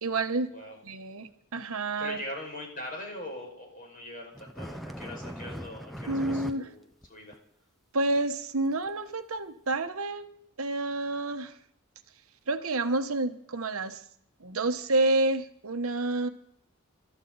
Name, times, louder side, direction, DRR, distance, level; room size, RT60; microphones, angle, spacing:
voice 1, 0.0-0.5 0.8-2.2 6.1-6.7 7.9-10.3 10.6-11.5 12.5-14.0 14.4-16.3, right 2 dB, 75° right, 7 dB, 1.1 m, -29 dB
voice 2, 2.0-7.4, left 1 dB, 40° left, 0 dB, 5.5 m, -41 dB
paper cutter, 4.4-6.6 6.9-7.1 7.3-7.4 8.1-8.2 8.9-9.0 9.7-9.8, equal, ahead, 0.7 m, -39 dB
25.0 x 13.0 x 4.0 m, 0.65 s
head